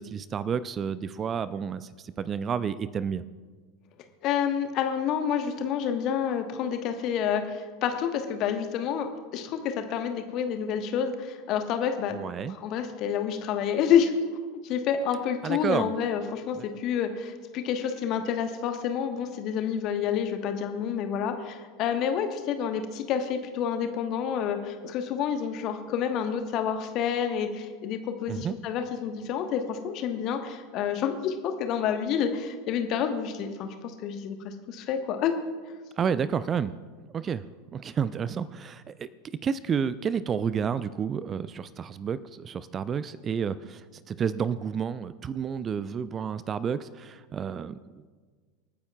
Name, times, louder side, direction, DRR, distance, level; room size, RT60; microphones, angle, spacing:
voice 1, 0.0-3.2 12.1-12.6 15.4-15.9 16.6-16.7 28.3-28.5 36.0-36.7 37.1-37.5 37.7-48.1, right 7 dB, 25° right, 16 dB, 0.4 m, -30 dB
voice 2, 4.2-9.1 9.3-12.1 12.4-14.1 14.6-33.7 34.0-35.3, left 8 dB, 40° left, 7 dB, 1.2 m, -28 dB
27.0 x 9.5 x 2.3 m, 1.5 s
figure-of-eight pair, 80°, 0 cm